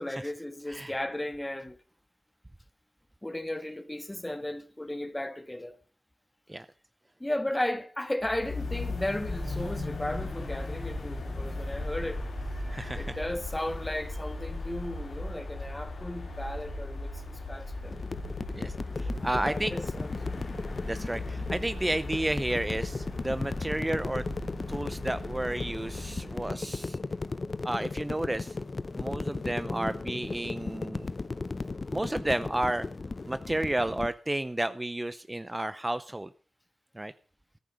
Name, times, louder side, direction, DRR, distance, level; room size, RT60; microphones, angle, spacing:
voice 1, 0.0-1.8 3.2-5.8 7.2-12.2 12.9-17.9 19.0-20.4 21.5-21.6 29.7-30.0, left 1 dB, 15° left, 1.5 m, -35 dB
sound 1, 8.2-26.5, left 2 dB, 85° left, 4.3 m, -37 dB
voice 2, 12.6-13.2 18.5-19.7 20.8-24.2 24.7-27.0 27.6-28.5 29.0-31.1 31.9-32.9 33.3-36.3 37.0-37.1, right 1 dB, 20° right, 0.6 m, -32 dB
sound 2, 17.8-34.1, left 3 dB, 50° left, 0.6 m, -36 dB
13.5 x 10.5 x 5.2 m
cardioid pair, 50°, 0 cm